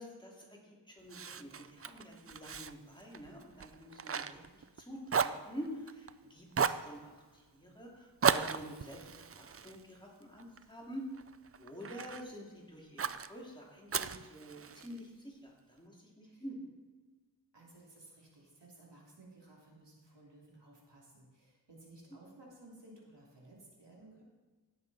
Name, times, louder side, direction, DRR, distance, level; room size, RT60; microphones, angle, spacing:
voice 1, 0.0-11.1 11.6-16.7, equal, 10° left, -3 dB, 2.6 m, -48 dB
Fire, 1.1-4.8 5.1-6.1 6.5-6.9 8.2-10.6 11.1-12.3 13.0-13.3 13.9-15.0, right 6 dB, 35° right, 0.4 m, -35 dB
voice 2, 17.5-24.2, right 2 dB, 75° right, -3 dB, 2.9 m, -57 dB
17.0 x 6.7 x 4.1 m, 1.4 s
wide cardioid pair, 60°, 43 cm